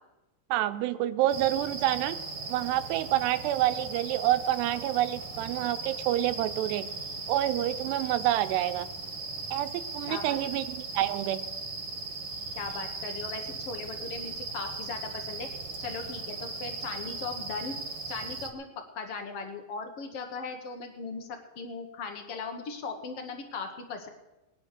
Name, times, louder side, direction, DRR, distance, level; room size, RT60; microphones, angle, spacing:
voice 1, 0.5-2.2 2.5-6.8 7.3-8.9 9.5-11.4, right 14 dB, 85° right, 11 dB, 2.8 m, -28 dB
sound 1, 1.3-18.5, right 4 dB, 50° right, 1.8 m, -38 dB
voice 2, 10.1-10.4 12.5-15.5 15.8-17.7 18.1-24.1, left 4 dB, 80° left, 5 dB, 1.3 m, -38 dB
20.0 x 9.6 x 6.7 m, 1.0 s
omnidirectional pair, 4.8 m